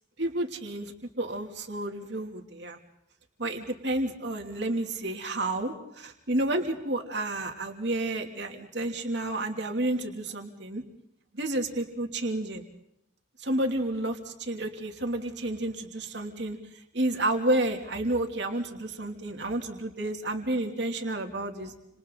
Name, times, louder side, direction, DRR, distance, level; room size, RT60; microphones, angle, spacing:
voice 1, 0.2-2.8 3.4-10.8 11.3-12.6 13.4-16.6 16.9-21.7, right 1 dB, 60° right, 3 dB, 3.0 m, -30 dB
30.0 x 27.0 x 4.1 m, 0.79 s
head